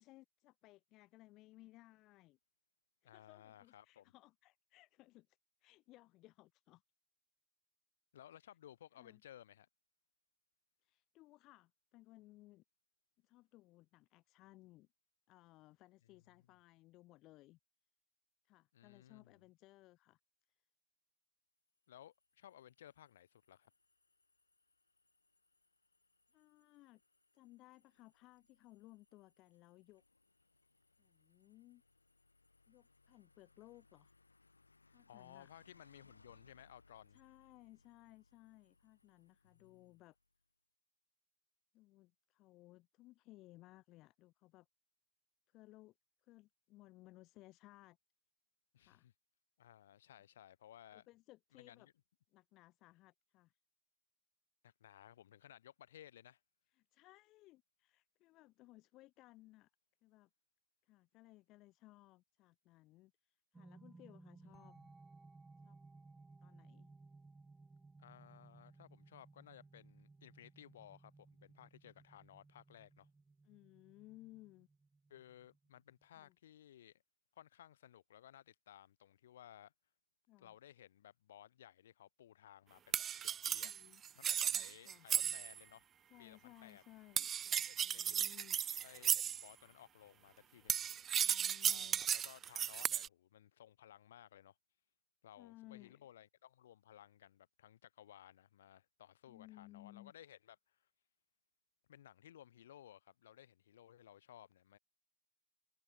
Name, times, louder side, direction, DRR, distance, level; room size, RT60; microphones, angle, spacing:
voice 1, 0.0-2.4 3.0-6.8 9.0-9.2 10.8-12.6 13.2-14.9 15.3-17.6 18.4-20.2 20.5-20.6 26.3-27.0 27.3-30.0 31.0-31.8 32.7-34.1 34.9-35.5 37.1-40.2 41.7-44.7 45.5-45.9 46.2-48.0 48.8-49.1 50.9-51.9 52.3-53.5 56.7-59.7 60.0-60.3 60.8-64.8 65.6-65.8 66.4-66.9 73.4-74.7 76.2-76.4 80.3-80.5 83.6-84.0 84.5-85.1 86.1-88.6 91.1-92.0 95.4-96.0 99.3-100.1, left 18 dB, 40° left, 2.7 m, -62 dB
voice 2, 3.0-4.1 8.1-9.7 18.7-19.4 21.9-23.7 35.1-37.2 39.4-40.0 48.7-49.1 49.6-51.1 51.5-51.9 54.6-56.4 64.6-64.9 68.0-73.1 75.1-77.0 77.4-79.7 80.4-83.7 84.1-85.8 86.2-86.8 87.7-88.2 88.8-90.9 91.6-94.6 95.2-100.9 101.9-104.8, left 11 dB, 60° left, 6.3 m, -59 dB
sound 1, 21.8-40.4, left 3 dB, 80° left, 5.1 m, -72 dB
sound 2, 63.5-76.2, right 3 dB, 10° right, 3.5 m, -61 dB
sound 3, 82.9-85.6 87.2-89.5 90.7-93.1, right 9 dB, 25° right, 0.4 m, -35 dB
figure-of-eight pair, 90°, 0 cm